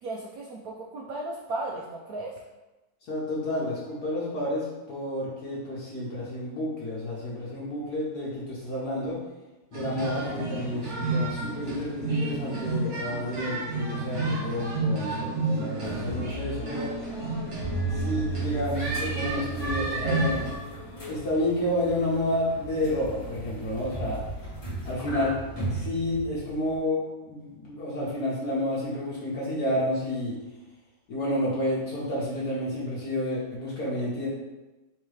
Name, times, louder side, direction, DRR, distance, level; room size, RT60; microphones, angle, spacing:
voice 1, 0.0-2.3, right 2 dB, 85° right, -2 dB, 0.8 m, -35 dB
voice 2, 3.1-9.2 9.7-16.9 17.9-20.5 21.1-24.2 24.8-25.4 25.7-30.4 31.1-34.3, left 1 dB, 60° left, -7 dB, 1.4 m, -30 dB
sound 1, 9.7-20.6, right 3 dB, 50° right, 1.0 m, -30 dB
sound 2, 15.7-21.5, left 5 dB, 90° left, 1.5 m, -44 dB
sound 3, 18.3-26.8, right 2 dB, 20° left, 1.1 m, -38 dB
3.6 x 2.9 x 4.8 m, 1.1 s
omnidirectional pair, 2.1 m